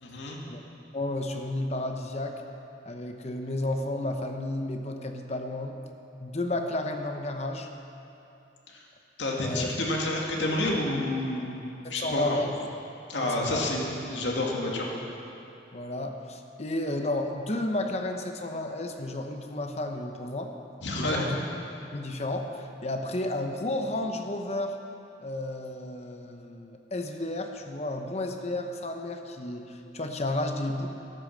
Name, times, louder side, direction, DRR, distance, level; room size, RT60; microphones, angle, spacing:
voice 1, 0.0-0.4 8.7-8.8 9.2-11.6 11.9-12.4 13.1-14.9 20.8-21.3, left 1 dB, 80° left, -2 dB, 2.1 m, -29 dB
voice 2, 0.9-2.4 2.8-5.8 6.2-7.7 9.4-9.7 11.9-12.5 13.2-13.7 15.7-20.5 21.0-21.4 21.9-24.8 25.2-30.9, left 1 dB, 35° left, 4 dB, 0.9 m, -32 dB
13.0 x 10.0 x 6.6 m, 2.8 s
head